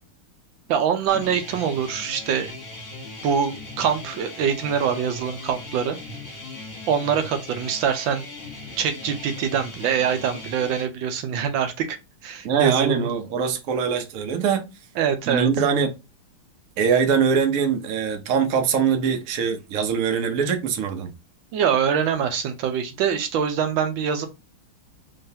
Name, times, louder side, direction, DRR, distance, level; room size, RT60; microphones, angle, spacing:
voice 1, 0.7-2.5 3.2-6.0 6.9-8.3 8.8-12.0 12.2-13.1 15.0-15.5 21.5-24.3, right 7 dB, 75° right, 1.3 m, -24 dB
sound 1, 1.1-10.9, left 2 dB, 45° left, 1.2 m, -39 dB
voice 2, 12.4-14.7 15.3-15.9 16.8-21.1, right 6 dB, 90° right, 0.7 m, -22 dB
3.8 x 3.1 x 2.7 m
omnidirectional pair, 2.4 m